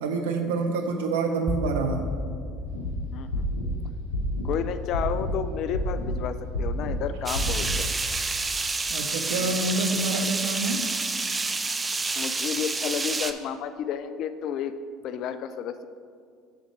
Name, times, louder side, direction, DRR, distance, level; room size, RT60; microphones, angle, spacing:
voice 1, 0.0-2.1 8.9-11.0, right 3 dB, 75° right, 4 dB, 0.5 m, -27 dB
sound 1, 1.5-11.5, left 2 dB, 5° right, 1.1 m, -38 dB
sound 2, 2.7-2.9 3.3-3.7 4.1-4.5 4.9-5.4 5.7-6.2 6.5-7.0 7.3-7.8, left 1 dB, 85° left, 0.8 m, -29 dB
voice 2, 3.1-3.5 4.4-7.9 9.4-9.6 10.1-10.3 12.2-14.7 15.0-15.9, left 8 dB, 55° left, 11 dB, 0.3 m, -31 dB
sound 3, 7.3-13.3, right 3 dB, 20° right, 0.5 m, -29 dB
7.4 x 4.2 x 5.7 m, 2.1 s
hypercardioid pair, 65°, 0 cm